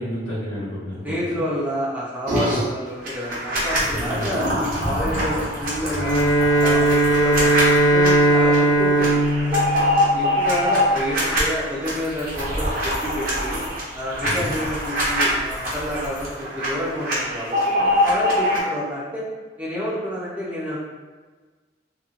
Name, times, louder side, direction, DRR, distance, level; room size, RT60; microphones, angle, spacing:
voice 1, 0.0-1.1 3.9-4.3 5.1-5.3 14.2-14.5, left 1 dB, 80° left, -8 dB, 1.1 m, -30 dB
voice 2, 1.0-6.3 6.6-9.6 10.0-13.6 13.9-19.2 19.6-20.8, equal, 10° right, -8 dB, 0.4 m, -29 dB
sound 1, 2.3-2.6 3.0-8.1 8.5-8.6 8.9-11.4 11.8-16.7 16.9-18.6, equal, 45° right, 0.7 m, -23 dB
Bowed string instrument, 5.9-10.5, right 2 dB, 65° left, 0.7 m, -18 dB
2.8 x 2.2 x 2.4 m, 1.3 s
head